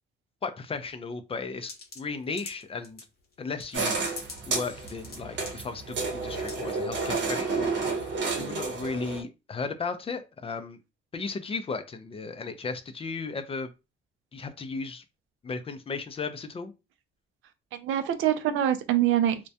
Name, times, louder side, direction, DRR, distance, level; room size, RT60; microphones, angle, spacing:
voice 1, 0.4-3.1 3.4-4.0 4.4-10.8 11.1-13.7 14.3-15.0 15.4-16.7, left 4 dB, 30° left, 0.4 m, -35 dB
sound 1, 1.6-3.0 3.6-4.4 4.7-5.2 5.5-5.6 6.1-6.2 6.4-6.6, left 3 dB, 50° left, 0.8 m, -42 dB
sound 2, 3.7-9.2, right 4 dB, 65° right, 0.8 m, -31 dB
voice 2, 17.7-19.5, right 11 dB, 80° right, 0.4 m, -25 dB
2.2 x 2.1 x 2.7 m
cardioid pair, 90°, 20 cm